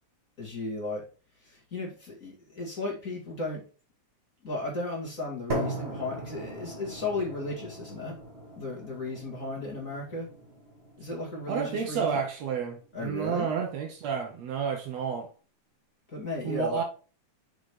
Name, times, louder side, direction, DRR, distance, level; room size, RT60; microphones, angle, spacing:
voice 1, 0.4-1.0 1.4-3.6 4.4-8.2 8.6-10.3 11.0-12.2 12.9-13.5 16.1-16.8, left 2 dB, 30° left, 2.1 m, -35 dB
sound 1, 5.5-13.5, right 1 dB, 25° right, 1.8 m, -39 dB
voice 2, 11.5-15.3 16.4-16.8, right 6 dB, 65° right, 2.0 m, -30 dB
6.1 x 5.2 x 4.8 m
omnidirectional pair, 3.5 m